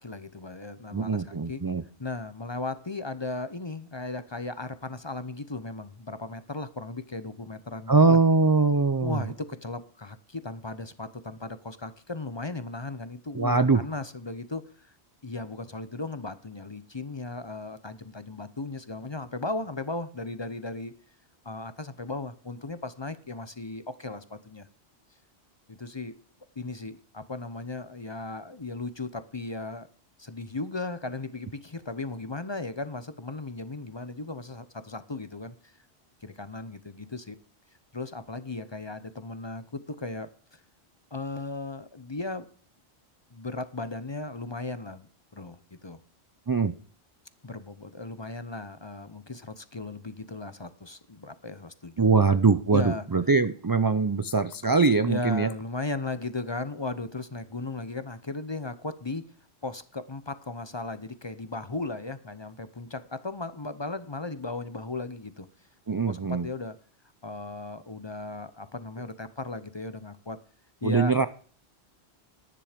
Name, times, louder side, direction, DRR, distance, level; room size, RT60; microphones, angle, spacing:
voice 1, 0.0-1.6 2.0-8.2 9.0-14.9 15.2-20.9 21.4-24.7 25.7-26.1 26.6-29.9 30.2-35.7 36.2-37.4 37.9-40.6 41.1-42.5 43.3-46.0 47.4-52.4 52.7-53.1 55.1-59.3 59.6-65.5 65.9-66.8 67.2-70.4 70.8-71.1, left 3 dB, 30° left, 12 dB, 0.7 m, -36 dB
voice 2, 0.9-1.8 7.9-9.2 13.4-13.8 46.5-46.7 52.0-55.5 65.9-66.5 70.8-71.3, right 4 dB, 40° right, 11 dB, 0.3 m, -22 dB
10.5 x 10.0 x 5.1 m, 0.43 s
omnidirectional pair, 1.1 m